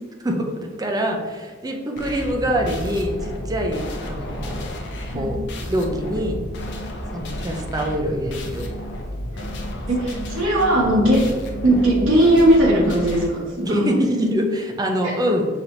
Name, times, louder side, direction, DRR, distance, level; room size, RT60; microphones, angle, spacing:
voice 1, 0.8-4.7 5.1-5.4 5.7-6.4 7.1-8.7 9.7-9.8 13.6-15.5, equal, 20° right, 2 dB, 0.5 m, -24 dB
sound 1, 2.0-13.3, left 1 dB, 60° left, 0.6 m, -31 dB
voice 2, 9.9-11.2 11.6-13.9 15.0-15.1, right 1 dB, 75° right, -4 dB, 1.2 m, -18 dB
5.8 x 2.9 x 2.6 m, 1.5 s
head